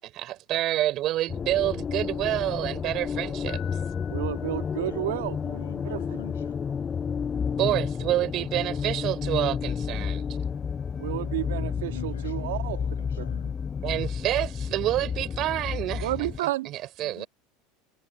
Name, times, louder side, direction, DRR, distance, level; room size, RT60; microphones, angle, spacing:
voice 1, 0.0-3.6 7.6-10.2 13.8-16.3 16.6-17.3, right 14 dB, 50° right, 4.4 m, -28 dB
sound 1, 1.3-16.4, left 6 dB, 25° left, 0.4 m, -31 dB
Piano, 3.5-5.6, left 17 dB, 55° left, 7.9 m, -49 dB
voice 2, 4.1-6.0 11.0-12.8 13.2-13.3 16.0-16.7, right 17 dB, 75° right, 2.1 m, -31 dB
voice 3, 5.4-6.6 11.7-13.6 17.0-17.3, left 11 dB, 85° left, 7.7 m, -45 dB
hypercardioid pair, 85°, 0 cm